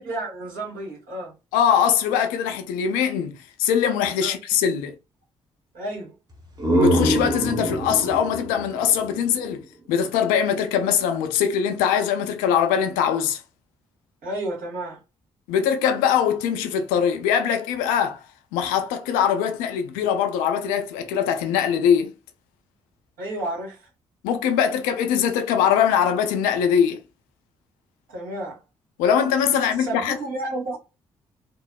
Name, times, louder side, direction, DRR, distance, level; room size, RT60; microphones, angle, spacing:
voice 1, 0.0-1.3 4.2-4.3 5.7-6.1 14.2-15.0 23.2-23.9 28.1-28.6 29.8-30.8, right 1 dB, 70° right, 1.5 m, -31 dB
voice 2, 1.5-4.9 6.8-13.4 15.5-18.2 18.5-22.1 24.2-27.0 29.0-30.2, left 8 dB, 75° left, 0.5 m, -22 dB
sound 1, 6.3-10.0, right 1 dB, 25° right, 1.0 m, -25 dB
2.9 x 2.0 x 2.2 m
hypercardioid pair, 40°, 15 cm